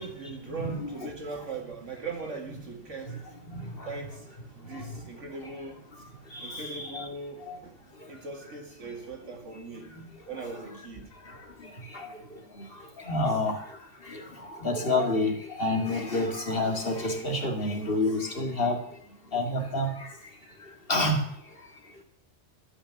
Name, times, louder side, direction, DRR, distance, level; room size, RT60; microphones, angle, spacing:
voice 1, 0.0-5.9 6.2-9.9 10.3-11.1, right 4 dB, 75° right, 2.3 m, -40 dB
voice 2, 0.5-1.1 3.5-3.9 6.3-7.1 7.5-7.6 10.0-10.1 11.9-12.1 13.1-13.6 14.1-14.2 14.6-18.8 19.3-20.0 20.9-21.2, left 2 dB, 50° left, 2.1 m, -28 dB
12.5 x 6.3 x 9.6 m
omnidirectional pair, 1.3 m